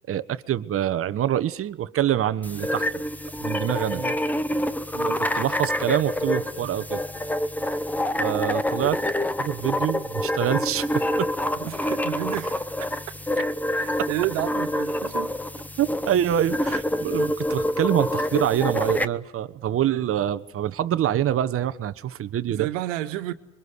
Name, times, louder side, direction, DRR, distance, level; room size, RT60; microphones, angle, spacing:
voice 1, 0.1-2.9 3.4-4.0 5.1-7.0 8.2-9.0 9.4-11.3 14.0-14.1 15.8-22.7, right 11 dB, 35° right, 1.4 m, -25 dB
sound 1, 2.4-19.0, left 1 dB, 5° left, 1.0 m, -27 dB
voice 2, 4.9-5.2 11.6-13.1 13.7-15.4 19.8-20.0 22.5-23.3, right 15 dB, 75° right, 1.9 m, -31 dB
27.0 x 23.5 x 8.3 m
supercardioid pair, 105°, 38 cm